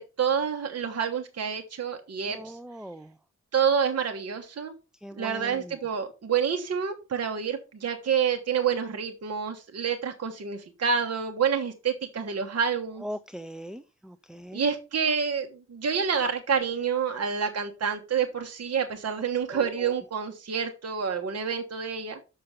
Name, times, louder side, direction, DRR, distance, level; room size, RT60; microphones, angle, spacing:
voice 1, 0.0-2.6 3.5-4.7 5.2-13.0 14.5-22.2, right 6 dB, 55° right, 4 dB, 1.3 m, -28 dB
voice 2, 2.3-3.1 5.0-5.8 13.0-14.7 19.5-20.0, equal, ahead, 14 dB, 0.5 m, -40 dB
6.7 x 6.6 x 5.6 m, 0.30 s
cardioid pair, 85°, 29 cm